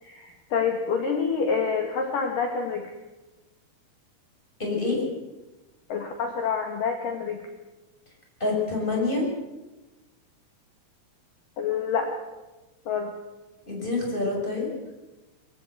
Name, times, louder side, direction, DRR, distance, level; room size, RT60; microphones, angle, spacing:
voice 1, 0.0-2.9 5.9-7.4 11.6-12.1 12.9-13.1, left 6 dB, 60° left, 3 dB, 3.1 m, -27 dB
voice 2, 4.6-5.0 8.4-9.2 13.7-14.7, left 3 dB, 10° left, -2 dB, 6.1 m, -26 dB
24.0 x 15.5 x 7.9 m, 1.1 s
omnidirectional pair, 4.7 m